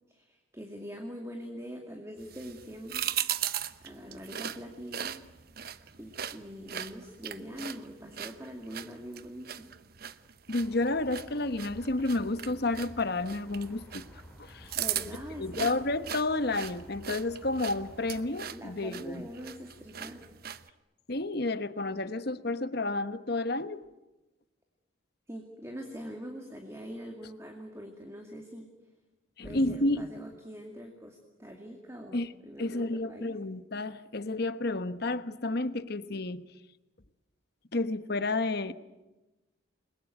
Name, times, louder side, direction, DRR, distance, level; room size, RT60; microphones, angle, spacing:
voice 1, 0.1-3.1 3.4-3.6 3.8-5.2 6.0-9.7 14.8-15.7 18.5-20.2 25.3-28.7 29.4-33.4, equal, 15° right, 2.4 m, -43 dB
sound 1, 2.2-20.7, right 10 dB, 45° right, 0.9 m, -39 dB
voice 2, 10.5-14.0 14.4-14.7 15.4-19.2 21.1-23.8 29.4-30.1 32.1-32.3 32.6-36.4 37.7-38.7, left 2 dB, 50° left, 1.1 m, -31 dB
sound 2, 10.6-18.3, equal, 5° left, 5.9 m, -52 dB
29.0 x 21.5 x 9.3 m
head